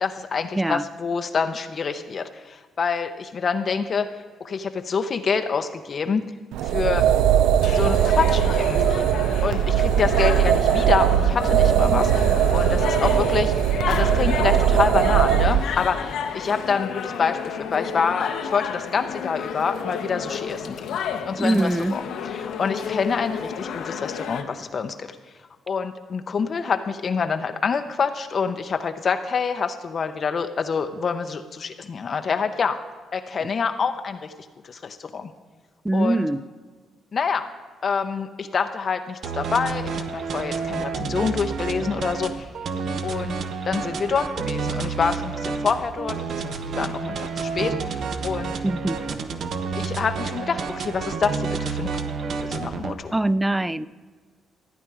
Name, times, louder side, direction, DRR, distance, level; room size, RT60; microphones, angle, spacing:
voice 1, 0.0-4.1 4.4-6.2 6.6-7.0 7.6-9.1 9.4-13.5 13.9-16.1 16.3-21.0 21.3-25.2 25.7-32.8 33.1-34.3 34.6-35.3 35.9-36.3 37.1-37.5 37.8-42.5 43.0-43.4 43.6-48.6 49.8-51.9 52.3-53.1, left 5 dB, 45° left, 8 dB, 0.6 m, -26 dB
sound 1, 6.5-15.6, right 10 dB, 90° right, 0.4 m, -20 dB
sound 2, 7.6-24.4, left 7 dB, 80° left, 0.9 m, -31 dB
voice 2, 21.4-22.0 35.8-36.4 48.6-49.0 53.1-53.9, right 1 dB, 10° right, 17 dB, 0.3 m, -22 dB
sound 3, 39.2-52.9, right 5 dB, 60° right, 0.8 m, -29 dB
14.0 x 8.9 x 4.8 m, 1.5 s
cardioid pair, 90°, 0 cm